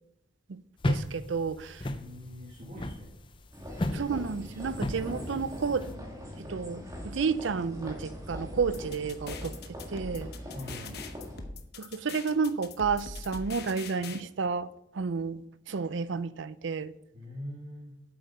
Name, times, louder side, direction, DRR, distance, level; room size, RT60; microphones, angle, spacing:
sound 1, 0.8-5.9, left 1 dB, 25° left, 0.5 m, -34 dB
voice 1, 0.9-1.8 3.9-5.9 6.5-9.6 9.9-10.3 11.8-16.9, right 5 dB, 80° right, 0.5 m, -31 dB
voice 2, 1.9-3.1 10.5-11.1 17.1-18.0, left 1 dB, 35° right, 1.5 m, -43 dB
sound 2, 3.5-11.4, equal, 20° right, 2.4 m, -41 dB
sound 3, 8.6-14.2, left 4 dB, 55° left, 0.9 m, -42 dB
8.2 x 7.8 x 5.4 m
head